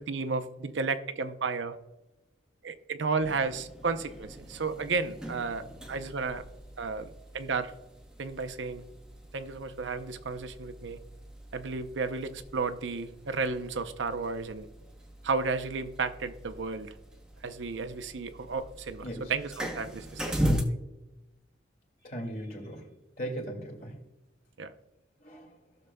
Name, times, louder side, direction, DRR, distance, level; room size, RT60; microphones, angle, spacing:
voice 1, 0.0-1.8 2.6-6.4 6.8-7.7 8.2-8.8 9.3-11.0 11.5-14.7 15.2-16.9 17.4-20.6 24.6-24.7, right 4 dB, 75° right, 10 dB, 0.6 m, -33 dB
sound 1, 3.2-20.6, equal, 5° right, 0.8 m, -39 dB
voice 2, 22.0-22.9 23.2-23.9 25.2-25.5, right 1 dB, 50° left, 0 dB, 2.2 m, -38 dB
16.0 x 6.6 x 2.2 m, 1.0 s
head